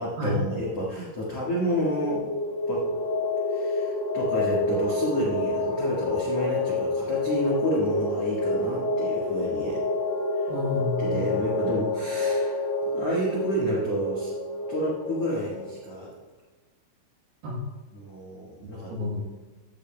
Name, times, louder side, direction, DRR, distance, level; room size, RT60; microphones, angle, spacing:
voice 1, 0.0-2.3 2.7-2.8 3.5-9.8 11.0-12.6 12.9-14.3 14.7-16.1 17.9-18.9, equal, 80° left, -6 dB, 1.3 m, -29 dB
sound 1, 1.4-15.8, left 2 dB, 20° left, 0.7 m, -28 dB
voice 2, 10.5-11.4 17.4-17.6 18.9-19.2, left 2 dB, 70° right, -1 dB, 2.5 m, -30 dB
15.0 x 8.8 x 2.2 m, 1.3 s
omnidirectional pair, 5.6 m